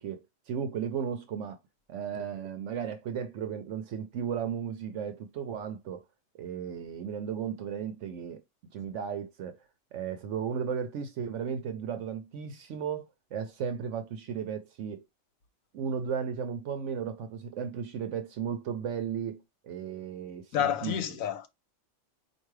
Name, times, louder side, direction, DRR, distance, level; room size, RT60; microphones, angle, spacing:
voice 1, 0.0-1.6 1.9-6.0 6.4-8.4 8.7-9.6 9.9-15.0 15.7-21.0, right 7 dB, 70° right, 0.9 m, -35 dB
voice 2, 20.5-21.5, left 10 dB, 85° left, 1.1 m, -29 dB
4.6 x 2.6 x 3.1 m
omnidirectional pair, 1.4 m